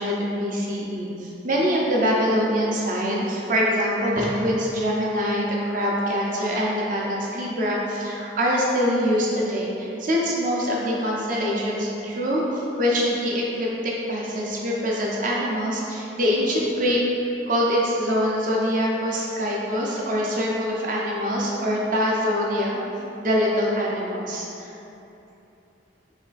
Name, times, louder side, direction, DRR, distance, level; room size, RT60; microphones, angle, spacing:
voice 1, 0.0-17.0 17.5-22.8 23.2-24.7, equal, 45° right, -4 dB, 0.6 m, -24 dB
3.4 x 3.2 x 4.0 m, 2.9 s
head